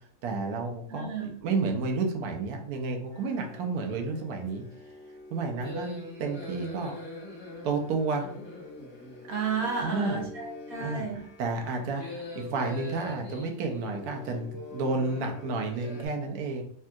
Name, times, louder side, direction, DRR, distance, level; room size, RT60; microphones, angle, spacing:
voice 1, 0.2-4.6 5.3-6.9 7.6-8.3 9.8-10.2 10.8-16.6, right 3 dB, 90° right, 3 dB, 1.1 m, -31 dB
voice 2, 0.9-1.4 9.3-11.3, right 5 dB, 70° right, -1 dB, 1.4 m, -32 dB
sound 1, 3.1-16.1, left 2 dB, 25° left, 0.6 m, -43 dB
3.3 x 2.7 x 2.2 m, 0.62 s
omnidirectional pair, 1.6 m